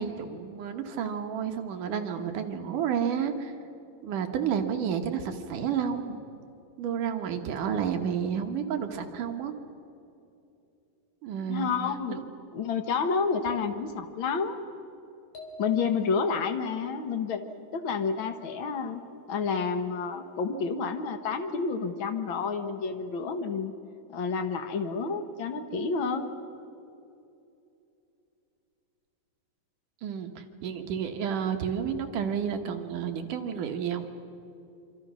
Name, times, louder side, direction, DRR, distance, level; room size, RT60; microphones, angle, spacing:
voice 1, 0.0-3.5 4.0-6.2 6.8-9.5 11.2-11.7 30.0-34.1, right 7 dB, 65° right, 5 dB, 2.7 m, -31 dB
voice 2, 11.4-12.2 12.5-14.6 15.6-17.4 17.7-19.0 19.3-23.7 24.1-26.3, left 5 dB, 80° left, 7 dB, 1.1 m, -29 dB
sound 1, 15.3-16.5, left 6 dB, 65° left, 4.6 m, -43 dB
26.5 x 26.0 x 6.2 m, 2.7 s
omnidirectional pair, 4.2 m